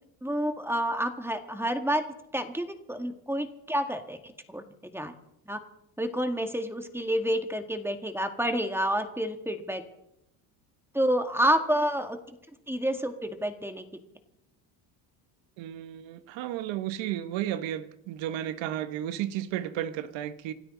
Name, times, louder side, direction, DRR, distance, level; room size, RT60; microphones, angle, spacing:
voice 1, 0.2-2.0 2.3-4.6 4.9-5.1 5.5-5.6 6.0-9.8 10.9-12.2 12.7-13.8, equal, 5° right, 1.8 m, -29 dB
voice 2, 15.6-20.5, right 12 dB, 70° right, 1.3 m, -33 dB
27.0 x 12.5 x 3.9 m
supercardioid pair, 90°, 47 cm